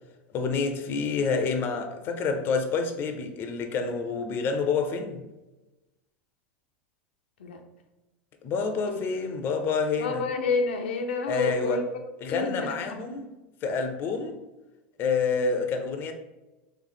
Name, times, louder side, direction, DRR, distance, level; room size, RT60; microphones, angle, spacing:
voice 1, 0.3-5.3 8.4-10.2 11.3-11.8 12.2-13.3 13.6-14.4 15.0-16.1, left 4 dB, 40° left, 0.5 m, -28 dB
voice 2, 10.0-11.8 12.3-13.0, left 4 dB, 90° left, 0.6 m, -29 dB
3.1 x 3.1 x 3.9 m
hypercardioid pair, 110°, 6 cm